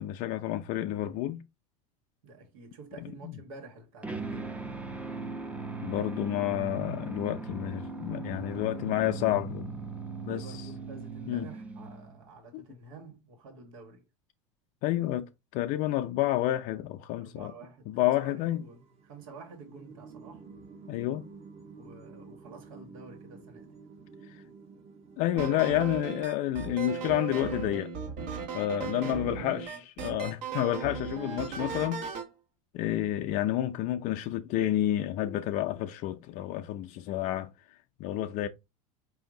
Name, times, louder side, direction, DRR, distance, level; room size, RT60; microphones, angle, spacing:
voice 1, 0.0-1.4 3.2-3.3 5.8-9.9 10.3-10.7 11.3-11.5 12.5-12.6 14.8-17.5 17.9-18.6 20.9-21.3 25.2-27.9 28.5-32.0 32.7-37.5 38.0-38.5, left 14 dB, 50° left, 0.5 m, -30 dB
voice 2, 2.2-4.5 8.2-9.2 10.2-14.0 17.2-20.5 21.7-23.7 28.7-29.8, right 3 dB, 80° right, 1.4 m, -49 dB
sound 1, 4.0-12.3, right 4 dB, 10° right, 0.6 m, -39 dB
sound 2, 18.4-27.1, right 4 dB, 35° right, 1.0 m, -51 dB
sound 3, 25.4-32.3, right 7 dB, 60° right, 1.3 m, -37 dB
4.9 x 2.7 x 3.8 m
hypercardioid pair, 100°, 17 cm